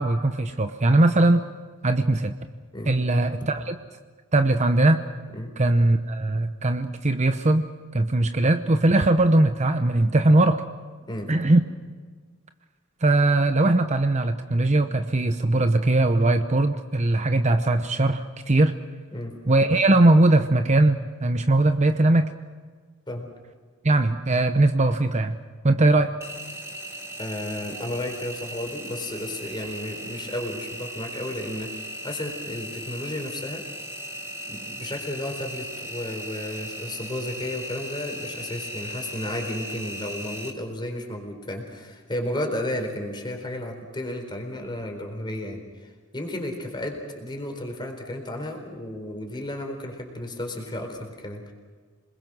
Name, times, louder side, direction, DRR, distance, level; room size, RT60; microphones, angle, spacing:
voice 1, 0.0-1.4 1.8-2.3 2.9-3.8 4.3-5.0 5.6-7.7 7.9-10.6 11.3-11.6 13.0-18.8 19.5-22.3 23.8-25.4 25.6-26.1, right 2 dB, 35° right, 8 dB, 0.8 m, -20 dB
Engine, 26.2-40.5, equal, 15° right, 1.8 m, -37 dB
voice 2, 27.2-33.6 34.4-51.5, left 1 dB, 20° left, 3 dB, 4.2 m, -33 dB
28.0 x 21.0 x 6.2 m, 1.5 s
head